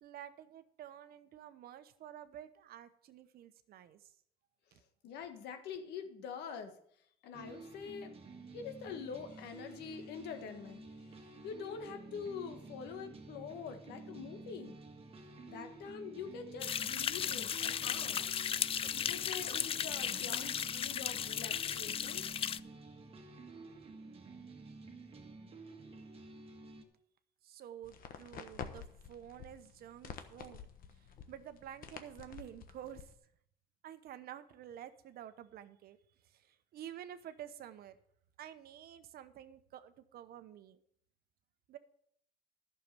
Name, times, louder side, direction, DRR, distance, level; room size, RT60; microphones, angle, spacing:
voice 1, 0.0-4.1 4.7-4.8 27.4-30.6 31.0-33.1 33.8-36.0 36.2-38.0 38.4-40.8 41.7-41.8, right 10 dB, 65° right, 12 dB, 0.9 m, -50 dB
voice 2, 5.0-6.7 7.2-8.1 8.5-14.8 15.4-18.2 18.9-22.3 22.6-22.7, left 6 dB, 80° left, 7 dB, 1.6 m, -45 dB
sound 1, 7.3-26.8, right 3 dB, 35° right, 1.6 m, -51 dB
sound 2, 16.6-22.6, left 9 dB, 35° left, 0.4 m, -36 dB
sound 3, 27.8-33.1, left 7 dB, 60° left, 1.3 m, -50 dB
11.5 x 6.8 x 6.7 m, 0.70 s
cardioid pair, 110°, 17 cm